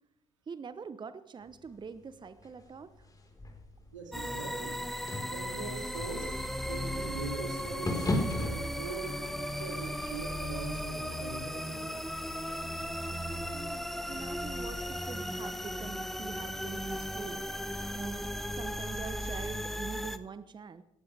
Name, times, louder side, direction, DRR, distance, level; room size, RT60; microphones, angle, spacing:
voice 1, 0.5-2.9 13.5-17.5 17.9-18.3 18.5-20.8, right 5 dB, 30° right, 13 dB, 0.9 m, -44 dB
sound 1, 1.5-8.6, left 2 dB, 25° left, 4.3 m, -38 dB
voice 2, 3.9-4.8 5.3-6.4 6.7-11.9, right 4 dB, 85° right, 3 dB, 2.6 m, -42 dB
sound 2, 4.1-20.2, equal, ahead, 1.1 m, -36 dB
18.5 x 15.0 x 3.4 m, 0.87 s
figure-of-eight pair, 50°, 16 cm